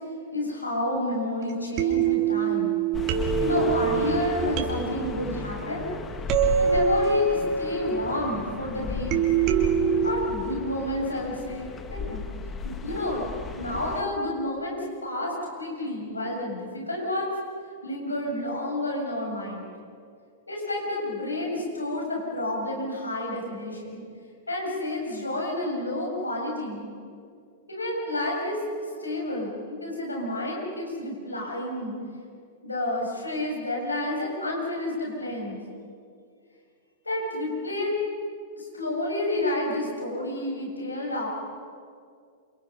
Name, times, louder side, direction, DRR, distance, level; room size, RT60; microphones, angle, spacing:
voice 1, 0.3-2.7 3.4-5.9 6.6-9.2 10.0-12.2 12.6-13.3 13.6-17.3 17.8-19.7 20.5-24.0 24.5-26.8 27.7-31.9 32.6-35.6 37.1-37.9 38.6-41.3, left 1 dB, 90° left, -1 dB, 7.4 m, -30 dB
sound 1, 1.5-1.6 1.8-8.5 9.1-10.4, right 7 dB, 40° right, 3.4 m, -26 dB
sound 2, 2.9-14.0, left 5 dB, 20° left, 1.8 m, -35 dB
28.5 x 28.5 x 5.7 m, 2.2 s
figure-of-eight pair, 100°, 0 cm